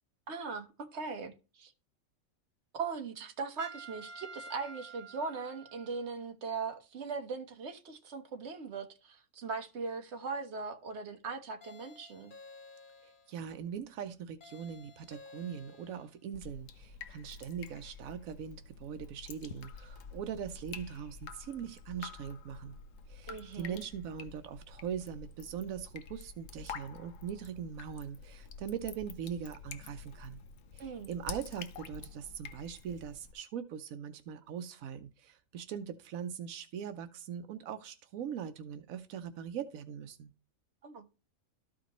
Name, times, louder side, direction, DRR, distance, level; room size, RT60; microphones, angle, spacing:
voice 1, 0.3-1.7 2.7-12.3 23.3-23.8 30.8-31.1 40.8-41.0, right 5 dB, 55° right, 1.4 m, -39 dB
Trumpet, 3.6-6.3, right 3 dB, 10° right, 1.3 m, -49 dB
sound 1, 11.6-13.4 14.4-16.2, left 4 dB, 40° left, 1.2 m, -54 dB
voice 2, 13.0-22.8 23.1-30.4 30.7-40.3, right 8 dB, 85° right, 1.1 m, -41 dB
Drip, 16.3-33.3, left 5 dB, 70° left, 1.1 m, -48 dB
13.0 x 5.0 x 3.0 m
omnidirectional pair, 1.4 m